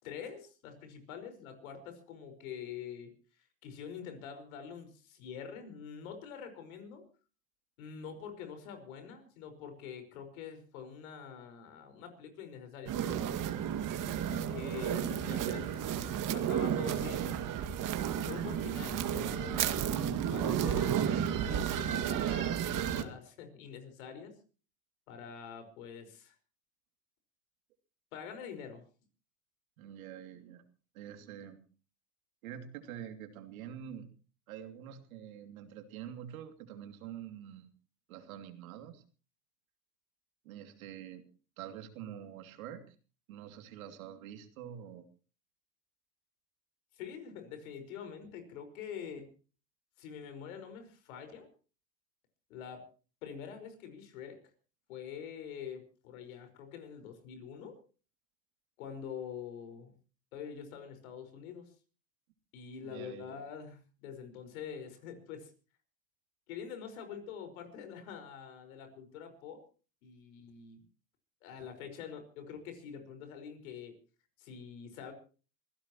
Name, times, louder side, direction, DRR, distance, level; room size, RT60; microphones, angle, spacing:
voice 1, 0.0-7.0 7.8-13.3 14.3-17.4 18.3-24.4 25.1-26.4 28.1-28.8 46.9-49.3 50.0-51.5 52.5-52.8 53.2-54.4 54.9-57.8 58.8-59.9 60.3-61.7 62.5-65.5 66.5-69.6 70.0-70.8 71.4-74.0 74.4-75.1, left 7 dB, 80° left, 7 dB, 5.2 m, -45 dB
sound 1, 12.9-23.0, right 9 dB, 50° right, 2.2 m, -32 dB
voice 2, 29.8-30.6 30.9-31.6 32.4-34.1 34.5-37.7 38.1-39.0 40.4-41.2 41.6-42.9 43.3-45.1 62.8-63.4, right 10 dB, 85° right, 6 dB, 2.9 m, -46 dB
25.5 x 16.0 x 3.0 m, 0.37 s
hypercardioid pair, 90°, 41 cm